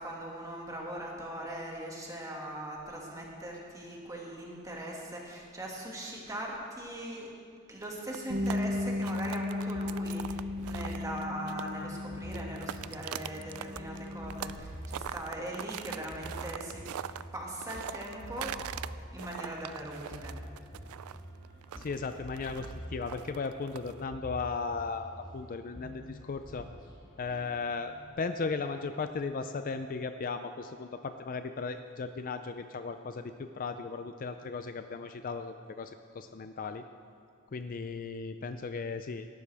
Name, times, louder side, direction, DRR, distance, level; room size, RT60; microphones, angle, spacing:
voice 1, 0.0-7.3 7.7-16.9 17.3-18.5 19.1-20.3, right 1 dB, 15° right, -2 dB, 2.0 m, -40 dB
sound 1, 7.8-11.9 12.2-14.6 14.8-18.9 19.2-24.0, right 10 dB, 85° right, 0.4 m, -42 dB
sound 2, 8.3-28.1, right 1 dB, 20° left, 1.6 m, -47 dB
Bass guitar, 8.3-13.0 13.3-14.6, left 2 dB, 55° right, 1.1 m, -36 dB
voice 2, 21.8-26.7 27.2-36.8 37.5-39.3, left 4 dB, 40° left, 8 dB, 0.4 m, -36 dB
18.0 x 12.0 x 3.5 m, 2.3 s
head